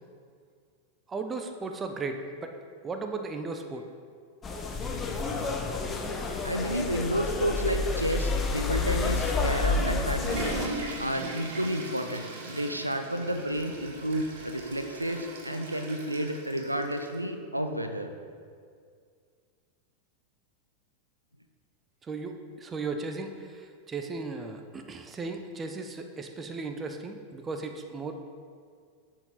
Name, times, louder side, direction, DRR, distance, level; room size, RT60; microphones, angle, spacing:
voice 1, 1.1-2.5 2.8-3.9 22.0-28.2, right 3 dB, 20° right, 5 dB, 0.6 m, -36 dB
sound 1, 4.4-10.7, left 3 dB, 20° left, 0.8 m, -29 dB
voice 2, 6.4-18.1, equal, 85° right, 6 dB, 0.5 m, -31 dB
Water / Toilet flush, 9.3-17.1, right 2 dB, 55° right, 1.3 m, -39 dB
10.5 x 4.6 x 3.8 m, 2.1 s
figure-of-eight pair, 90°, 0 cm